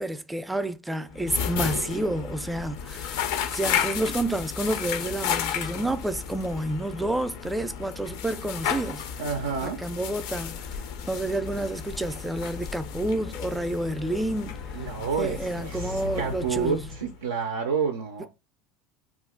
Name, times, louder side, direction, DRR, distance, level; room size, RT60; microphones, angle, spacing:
voice 1, 0.0-3.2 3.5-9.0 9.6-10.6 11.1-14.6 15.2-16.8 18.2-18.3, right 1 dB, 10° right, 0.4 m, -29 dB
sound 1, 1.1-17.2, left 8 dB, 70° left, 0.4 m, -33 dB
voice 2, 9.2-9.8 14.7-18.3, right 6 dB, 85° right, 0.3 m, -29 dB
2.4 x 2.1 x 3.6 m
hypercardioid pair, 75°, 0 cm